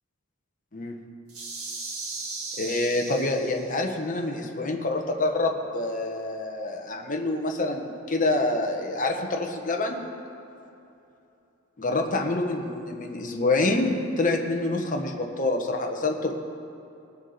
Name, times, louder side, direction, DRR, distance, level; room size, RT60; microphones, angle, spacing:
sound 1, 1.3-3.9, right 3 dB, 80° right, 2.0 m, -37 dB
voice 1, 2.6-10.0 11.8-16.3, left 2 dB, 40° left, 2 dB, 1.2 m, -27 dB
20.5 x 7.2 x 4.1 m, 2.8 s
head